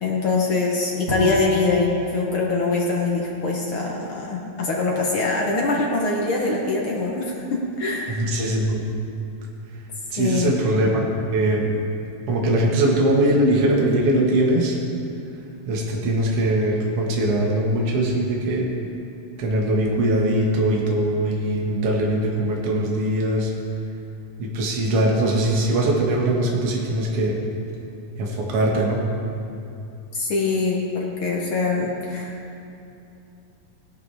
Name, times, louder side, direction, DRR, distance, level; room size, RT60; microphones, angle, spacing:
voice 1, 0.0-8.2 10.2-10.6 30.1-32.3, left 3 dB, 65° left, -2 dB, 1.3 m, -23 dB
Bowed string instrument, 1.1-4.3, right 1 dB, 30° right, 1.4 m, -33 dB
voice 2, 8.1-8.8 10.1-10.9 11.3-11.7 12.3-14.8 15.7-18.7 19.4-23.5 24.4-27.4 28.2-29.0, right 1 dB, 50° right, -2 dB, 2.3 m, -21 dB
17.5 x 11.0 x 3.5 m, 2.7 s
omnidirectional pair, 4.0 m